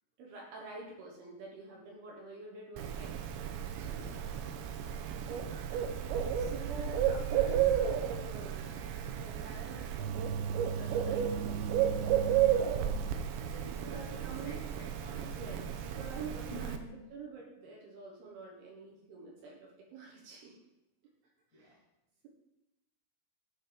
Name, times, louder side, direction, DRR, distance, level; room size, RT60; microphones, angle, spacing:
voice 1, 0.2-3.2 3.8-4.4 5.1-5.5 6.3-8.7 9.2-10.2 10.5-12.3 13.7-14.6 15.1-20.6 21.5-21.8, right 3 dB, 65° right, -2 dB, 2.8 m, -48 dB
Bird, 2.8-16.8, right 9 dB, 85° right, 2.6 m, -33 dB
voice 2, 4.2-4.5 6.4-6.6 13.5-15.5 16.5-17.0 21.5-21.8, equal, 35° left, -5 dB, 1.5 m, -50 dB
11.5 x 4.2 x 5.2 m, 0.92 s
omnidirectional pair, 5.7 m